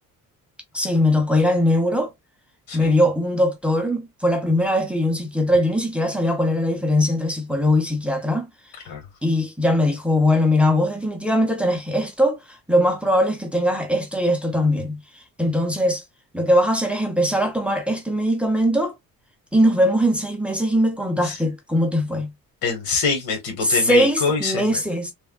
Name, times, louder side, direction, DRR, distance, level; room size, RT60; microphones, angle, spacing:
voice 1, 0.7-2.1 2.7-8.5 9.2-16.0 16.3-18.9 19.5-22.3 23.6-25.1, equal, 5° right, 0.5 m, -21 dB
voice 2, 22.6-24.8, left 5 dB, 85° left, 1.4 m, -25 dB
3.3 x 2.2 x 2.2 m
cardioid pair, 140°, 35 cm